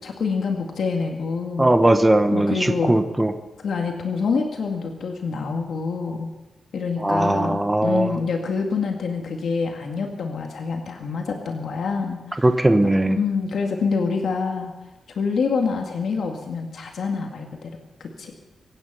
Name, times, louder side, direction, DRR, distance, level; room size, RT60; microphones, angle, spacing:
voice 1, 0.0-1.8 2.3-3.0 3.6-6.3 6.7-12.4 13.1-14.7 15.2-17.7 18.0-18.3, left 5 dB, 75° left, 2 dB, 1.9 m, -26 dB
voice 2, 1.6-3.3 7.0-8.2 12.4-13.2, right 1 dB, 15° right, 8 dB, 1.0 m, -19 dB
24.0 x 9.5 x 5.6 m, 1.0 s
wide cardioid pair, 115°, 0 cm